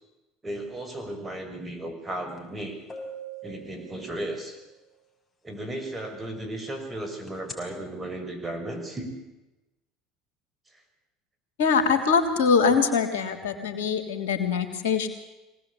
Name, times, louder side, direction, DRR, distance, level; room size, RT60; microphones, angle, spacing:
voice 1, 0.4-2.8 3.4-4.6 5.4-9.1 10.7-10.8, right 1 dB, 20° right, 6 dB, 6.4 m, -35 dB
sound 1, 2.4-2.5 2.9-4.6 7.3-7.5, right 2 dB, 25° left, 5.9 m, -41 dB
voice 2, 11.6-15.1, left 5 dB, 80° left, 5 dB, 3.2 m, -23 dB
24.0 x 18.5 x 8.5 m, 1.0 s
hypercardioid pair, 80°, 0 cm